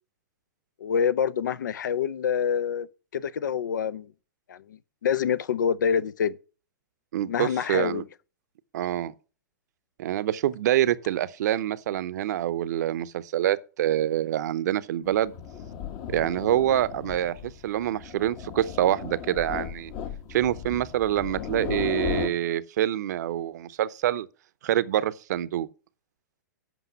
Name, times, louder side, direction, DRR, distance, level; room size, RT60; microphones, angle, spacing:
voice 1, 0.8-2.9 3.1-4.1 4.5-6.3 7.3-8.1, left 7 dB, 80° left, 0.6 m, -26 dB
voice 2, 7.1-8.0 8.7-9.1 10.0-15.3 16.1-19.9 20.3-24.3 24.6-25.7, right 12 dB, 65° right, 0.7 m, -26 dB
sound 1, 15.0-22.3, left 8 dB, 40° left, 1.2 m, -36 dB
8.1 x 5.4 x 7.0 m
hypercardioid pair, 120°, 10 cm